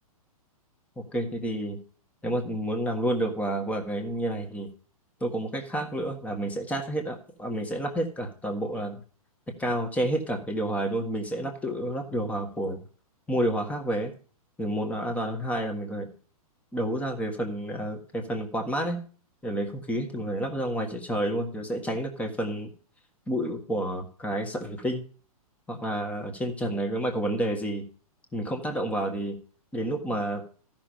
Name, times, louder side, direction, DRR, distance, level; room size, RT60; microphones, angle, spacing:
voice 1, 1.1-1.8 2.2-4.7 5.2-9.0 9.6-12.8 13.3-14.1 14.6-16.1 16.7-19.0 19.4-22.7 23.3-25.0 25.7-27.9 28.3-29.4 29.7-30.4, right 1 dB, 5° left, 4 dB, 1.6 m, -29 dB
14.0 x 6.0 x 5.1 m, 0.41 s
hypercardioid pair, 125°, 19 cm